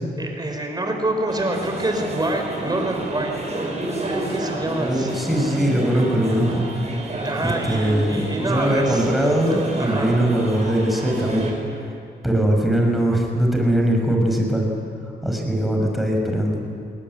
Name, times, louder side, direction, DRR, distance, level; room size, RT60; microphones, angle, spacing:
voice 1, 0.2-3.5 4.1-5.3 7.2-10.1, right 1 dB, 20° right, 3 dB, 5.2 m, -27 dB
sound 1, 1.3-11.5, right 2 dB, 40° right, 6.2 m, -30 dB
voice 2, 4.8-6.6 7.6-11.5 12.2-14.7 15.2-16.6, right 1 dB, ahead, 0 dB, 6.2 m, -21 dB
22.5 x 19.0 x 9.8 m, 2.4 s
cardioid pair, 90°, 18 cm